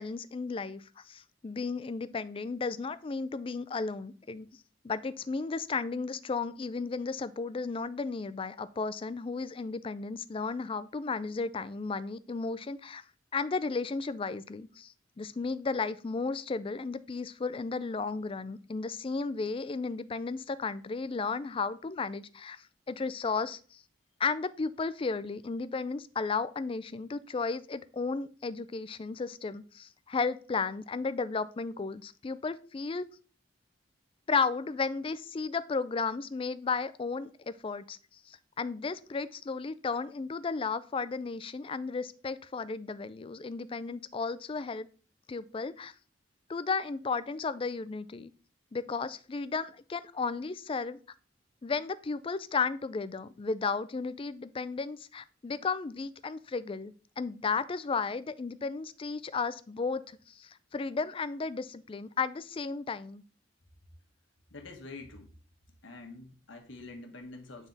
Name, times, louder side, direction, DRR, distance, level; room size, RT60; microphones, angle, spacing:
voice 1, 0.0-4.5 4.8-13.0 13.3-23.8 24.2-33.0 34.3-38.0 38.3-44.9 45.3-45.9 46.5-48.3 48.7-51.0 51.6-63.2, left 4 dB, 30° left, 15 dB, 0.4 m, -34 dB
voice 2, 64.5-65.3 65.8-67.7, left 3 dB, 80° left, 3 dB, 1.5 m, -46 dB
9.1 x 3.6 x 4.0 m, 0.40 s
head